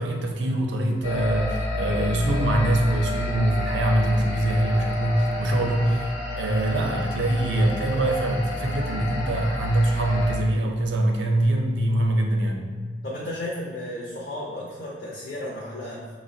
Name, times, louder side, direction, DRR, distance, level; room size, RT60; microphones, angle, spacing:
voice 1, 0.0-6.0 6.3-12.7, right 1 dB, 65° right, 2 dB, 0.4 m, -23 dB
sound 1, 1.0-10.4, left 1 dB, 65° left, 0.9 m, -30 dB
voice 2, 4.1-4.6 6.7-7.0 13.0-16.1, left 1 dB, 45° left, -5 dB, 0.5 m, -34 dB
4.8 x 2.0 x 2.6 m, 1.5 s
head